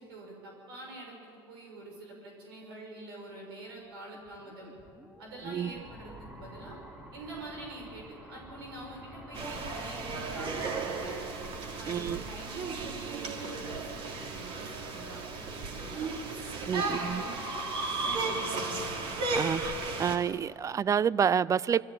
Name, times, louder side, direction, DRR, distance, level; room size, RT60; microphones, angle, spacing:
voice 1, 0.0-4.7 5.2-6.8 7.1-11.2 11.8-16.1 16.6-18.8, right 2 dB, 90° right, 6.4 m, -46 dB
sound 1, 4.0-14.9, equal, 10° right, 2.8 m, -51 dB
sound 2, 9.3-20.2, right 3 dB, 50° right, 3.0 m, -35 dB
voice 2, 11.9-12.2 16.7-17.2 19.3-19.7 20.0-21.8, right 7 dB, 25° right, 0.5 m, -28 dB
23.0 x 14.5 x 8.9 m
supercardioid pair, 95°, 12 cm